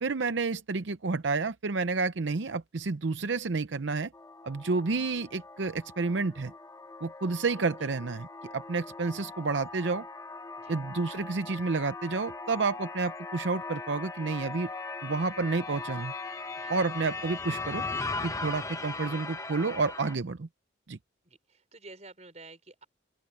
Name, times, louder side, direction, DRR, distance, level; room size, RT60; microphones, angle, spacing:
voice 1, 0.0-4.1 4.4-6.5 7.0-8.3 8.5-10.1 10.7-14.7 15.0-16.1 16.7-17.8 18.2-20.5 20.9-21.0, right 4 dB, 75° right, 0.7 m, -30 dB
sound 1, 4.1-20.2, left 3 dB, 15° left, 0.9 m, -39 dB
voice 2, 21.2-22.8, right 2 dB, 35° right, 5.1 m, -50 dB
open air
head